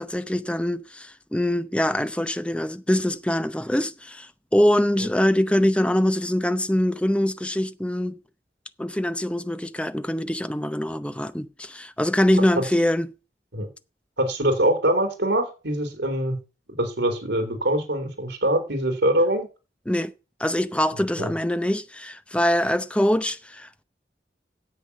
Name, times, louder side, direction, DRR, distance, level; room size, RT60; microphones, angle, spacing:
voice 1, 0.0-8.2 8.8-13.1 19.9-20.1 20.4-23.8, left 1 dB, 5° left, 0.6 m, -24 dB
voice 2, 14.2-16.4 16.8-19.5 20.9-21.3, right 1 dB, 85° right, 3.2 m, -23 dB
9.8 x 8.2 x 6.7 m
head